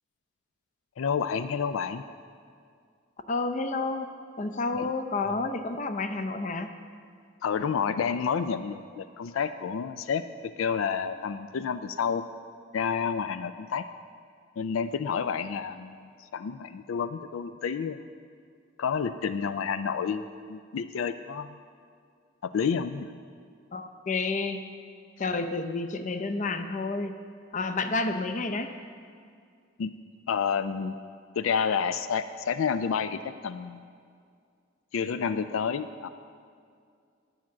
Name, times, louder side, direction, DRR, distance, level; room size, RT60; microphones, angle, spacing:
voice 1, 1.0-2.0 4.7-4.9 5.3-5.4 7.4-12.2 12.7-13.8 14.6-16.1 16.3-18.0 18.8-20.2 20.5-21.6 22.4-23.1 29.8-29.9 30.3-30.9 31.3-33.8 34.9-36.1, left 6 dB, 90° left, 11 dB, 0.4 m, -29 dB
voice 2, 3.3-4.1 4.4-6.7 23.7-24.6 25.2-27.1 27.5-28.7, left 3 dB, 40° left, 8 dB, 0.6 m, -30 dB
10.0 x 5.9 x 7.3 m, 2.2 s
head